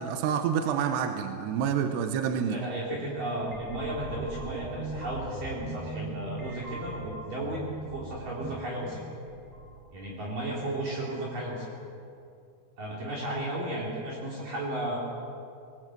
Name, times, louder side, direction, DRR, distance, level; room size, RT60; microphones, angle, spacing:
voice 1, 0.0-2.6, right 7 dB, 70° right, 6 dB, 3.1 m, -28 dB
voice 2, 2.5-7.6 7.9-9.0 9.9-11.7 12.8-15.0, right 1 dB, 45° right, -4 dB, 4.7 m, -34 dB
sound 1, 3.4-10.3, right 2 dB, 10° right, 4.3 m, -40 dB
24.0 x 20.5 x 7.9 m, 2.5 s
omnidirectional pair, 5.4 m